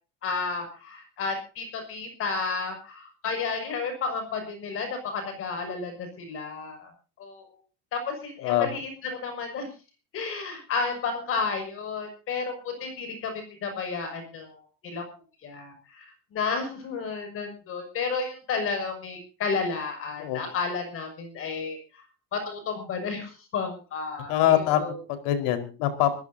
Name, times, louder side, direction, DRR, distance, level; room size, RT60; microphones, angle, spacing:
voice 1, 0.2-6.9 7.2-7.4 7.9-9.7 10.1-13.3 13.6-15.0 15.4-16.0 16.3-21.8 22.3-25.0, left 4 dB, 40° left, 6 dB, 6.6 m, -32 dB
voice 2, 20.2-20.5 24.3-24.8 25.1-26.1, left 12 dB, 70° left, 7 dB, 4.8 m, -24 dB
25.5 x 15.5 x 2.8 m, 0.35 s
cardioid pair, 155°, 34 cm